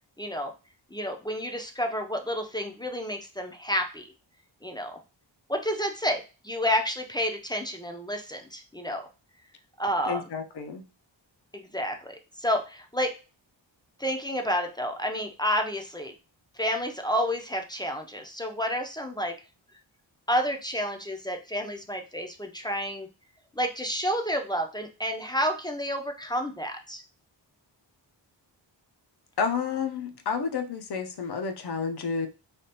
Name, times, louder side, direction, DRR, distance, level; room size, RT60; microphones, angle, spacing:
voice 1, 0.2-0.5 0.9-4.0 4.6-5.0 5.5-9.0 9.8-10.2 11.5-13.1 14.0-16.1 16.6-19.3 20.3-23.1 23.6-27.0, equal, 10° left, 3 dB, 0.5 m, -30 dB
voice 2, 10.1-10.8 29.4-32.3, left 6 dB, 60° left, 6 dB, 0.6 m, -30 dB
3.3 x 2.4 x 2.8 m, 0.31 s
wide cardioid pair, 85°, 45 cm